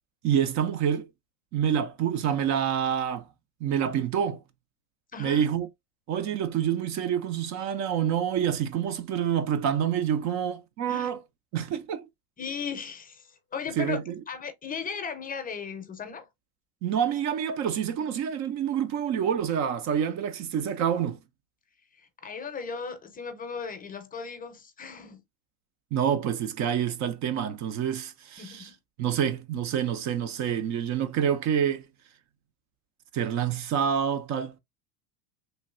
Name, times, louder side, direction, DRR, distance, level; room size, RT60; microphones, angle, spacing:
voice 1, 0.2-1.1 1.5-3.3 3.6-4.4 5.2-5.7 6.1-11.2 11.5-12.1 13.8-14.2 16.8-21.2 25.9-28.7 29.0-31.8 33.1-34.6, right 8 dB, 40° right, 0.5 m, -27 dB
voice 2, 5.1-5.5 10.9-11.1 12.4-14.0 14.3-16.3 22.0-25.2 28.4-28.7, left 6 dB, 20° left, 0.6 m, -37 dB
3.2 x 2.6 x 2.5 m
supercardioid pair, 125°, 45 cm